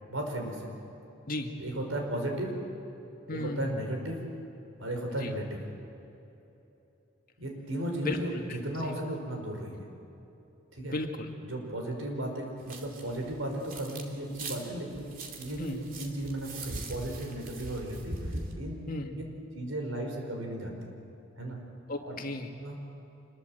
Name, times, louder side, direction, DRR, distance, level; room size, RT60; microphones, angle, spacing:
voice 1, 0.1-0.7 1.6-2.5 3.3-4.2 4.8-5.6 7.4-9.9 10.7-10.9 11.5-15.1 15.4-15.7 16.0-18.2 18.6-18.8 19.5-20.7 21.4-21.6 22.0-22.2 22.6-22.8, right 1 dB, 90° right, 2 dB, 5.3 m, -35 dB
voice 2, 3.3-3.7 5.2-5.3 8.0-8.6 8.8-9.0 10.8-11.3 15.6-15.8 18.9-19.2 21.9-22.5, left 1 dB, 45° left, 3 dB, 2.1 m, -35 dB
sound 1, 12.6-14.0 14.3-18.5, right 2 dB, 45° right, 2.7 m, -41 dB
26.5 x 21.5 x 8.1 m, 3.0 s
head